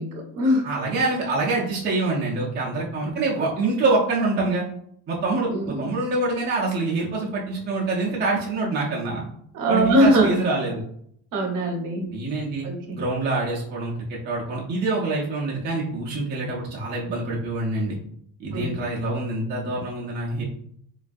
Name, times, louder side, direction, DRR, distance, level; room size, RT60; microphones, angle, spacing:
voice 1, 0.0-0.6 3.0-3.1 5.5-5.7 9.5-10.3 11.3-12.1 12.6-12.7 18.5-18.7, equal, 50° right, 1 dB, 0.8 m, -21 dB
voice 2, 0.6-4.6 5.1-5.5 5.8-9.2 9.7-10.8 12.1-12.7 12.9-18.0 18.4-20.4, right 3 dB, 25° right, -4 dB, 0.4 m, -25 dB
3.1 x 2.2 x 2.5 m, 0.68 s
cardioid pair, 165°, 41 cm